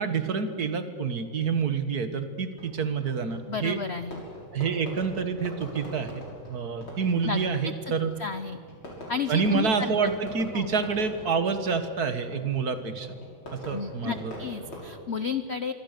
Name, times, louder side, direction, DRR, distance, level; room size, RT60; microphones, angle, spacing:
voice 1, 0.0-3.8 4.5-6.1 6.5-8.1 9.3-13.1 13.5-14.3, right 5 dB, 50° right, 9 dB, 1.9 m, -28 dB
Fireworks, 2.6-14.9, equal, 80° left, 6.9 m, -43 dB
voice 2, 3.5-4.2 7.2-7.4 8.2-8.6 9.1-10.1 10.5-10.7 13.7-15.7, left 5 dB, 60° left, 11 dB, 0.7 m, -32 dB
26.0 x 24.5 x 6.7 m, 2.1 s
omnidirectional pair, 2.2 m